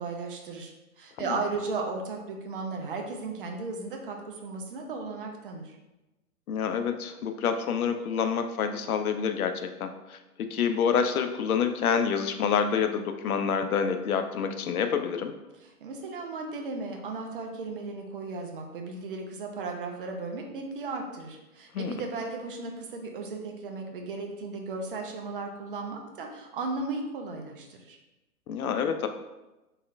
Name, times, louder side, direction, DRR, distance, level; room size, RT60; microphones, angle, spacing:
voice 1, 0.0-5.8 15.8-28.0, right 3 dB, 40° right, 2 dB, 0.5 m, -35 dB
voice 2, 6.5-15.3 21.7-21.9 28.5-29.1, left 7 dB, 70° left, 7 dB, 0.5 m, -27 dB
3.0 x 2.8 x 2.4 m, 1.0 s
figure-of-eight pair, 120°, 45 cm